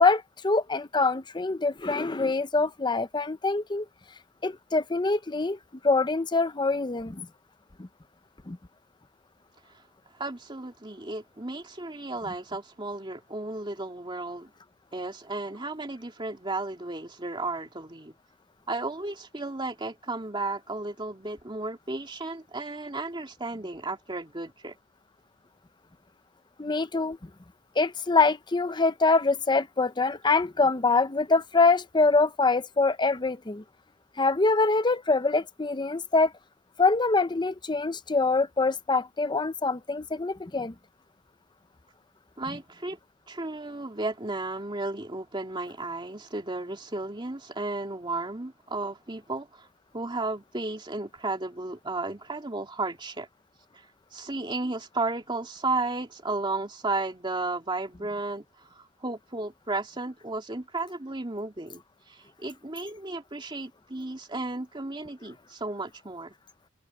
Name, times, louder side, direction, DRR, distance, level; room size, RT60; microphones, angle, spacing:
voice 1, 0.0-3.9 4.4-5.6 5.8-7.3 7.8-7.9 8.5-8.6 26.6-27.3 27.8-33.6 34.2-36.3 36.8-40.7, left 3 dB, 20° left, 0.7 m, -24 dB
voice 2, 10.2-14.5 14.9-18.1 18.7-24.7 42.4-43.0 43.3-49.7 49.9-53.3 54.1-61.8 62.1-66.3, right 2 dB, 25° right, 2.4 m, -34 dB
head